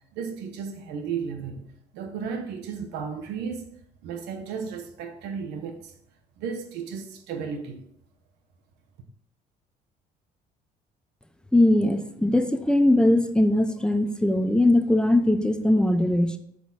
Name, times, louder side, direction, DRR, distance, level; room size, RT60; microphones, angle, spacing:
voice 1, 0.1-1.7 1.9-3.7 4.0-5.9 6.4-7.9, right 6 dB, 90° right, 1.2 m, -34 dB
voice 2, 11.5-16.4, left 1 dB, 5° left, 0.6 m, -20 dB
7.9 x 5.1 x 4.1 m
cardioid pair, 110°, 17 cm